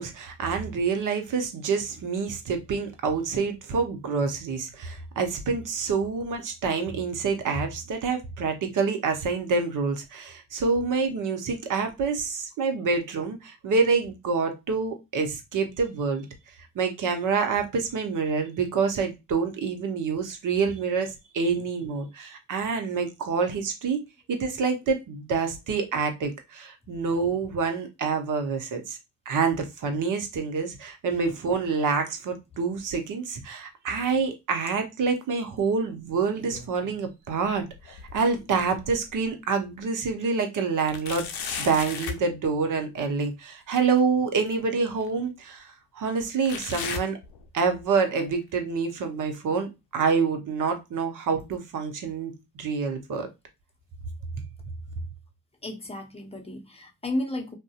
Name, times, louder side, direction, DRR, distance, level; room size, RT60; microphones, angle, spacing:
voice 1, 0.0-16.3 16.7-24.0 24.3-29.0 29.3-41.3 41.6-45.7 45.9-47.2 47.5-53.3, right 5 dB, 45° right, 0.8 m, -27 dB
sound 1, 36.1-37.0 37.4-39.3 39.8-39.9 40.9-42.3 44.0-44.1 45.0-45.1 46.4-47.8 48.2-48.6 49.2-49.3 50.2-50.3, left 6 dB, 60° left, 0.6 m, -37 dB
voice 2, 55.6-57.5, left 1 dB, 15° left, 0.8 m, -33 dB
2.5 x 2.1 x 2.4 m
hypercardioid pair, 45°, 43 cm